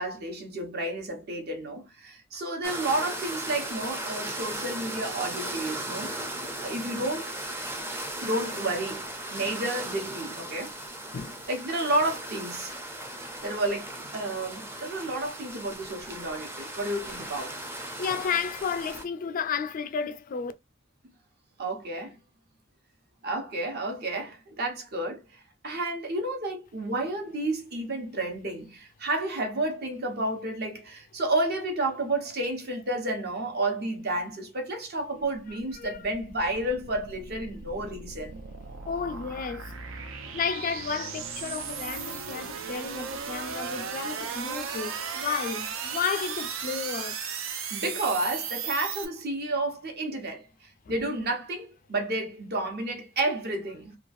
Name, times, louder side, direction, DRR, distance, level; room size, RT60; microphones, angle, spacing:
voice 1, 0.0-6.2 6.6-7.3 8.2-10.7 11.5-12.8 13.4-17.6 21.6-22.2 23.2-38.4 47.7-54.0, right 2 dB, 50° right, 0.9 m, -31 dB
sound 1, 2.6-19.0, right 1 dB, 10° right, 0.5 m, -37 dB
voice 2, 11.1-11.5 18.0-20.5 35.8-36.0 38.9-47.2 50.9-51.0, left 6 dB, 40° left, 0.3 m, -32 dB
sound 2, 35.2-49.1, right 6 dB, 75° right, 0.6 m, -36 dB
3.0 x 2.3 x 2.5 m
head